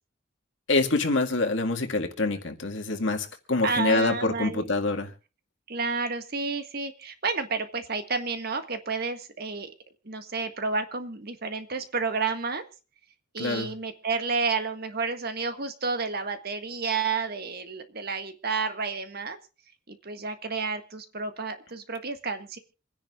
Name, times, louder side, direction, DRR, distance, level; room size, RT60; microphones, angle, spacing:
voice 1, 0.7-5.1 13.4-13.7, left 3 dB, 75° left, 4 dB, 2.0 m, -26 dB
voice 2, 3.6-4.7 5.7-9.7 10.1-12.6 13.3-19.4 19.9-22.6, right 4 dB, 55° right, 8 dB, 1.7 m, -30 dB
26.5 x 10.5 x 2.5 m, 0.34 s
head